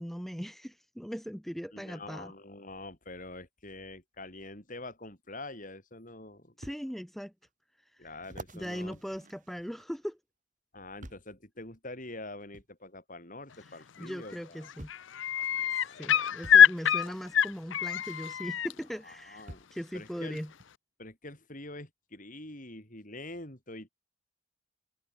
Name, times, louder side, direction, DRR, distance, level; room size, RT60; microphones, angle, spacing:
voice 1, 0.0-2.3 6.6-7.3 7.9-8.1 8.5-10.2 13.7-14.9 15.7-20.5, equal, ahead, 2.2 m, -39 dB
voice 2, 1.7-6.5 8.0-9.0 10.7-14.7 15.6-16.8 19.0-19.7 19.9-20.4 21.0-23.9, left 2 dB, 40° left, 6.5 m, -45 dB
sound 1, 6.6-6.8 7.4-7.5 8.2-10.1 11.0-11.4 12.5-12.7 14.0-14.1 14.8-15.1 16.4-16.7 18.3-18.4 19.5-19.8 20.6-20.7, right 1 dB, 40° right, 4.5 m, -48 dB
sound 2, 14.0-14.4 14.6-18.7 20.4-20.5, left 9 dB, 65° left, 0.6 m, -24 dB
head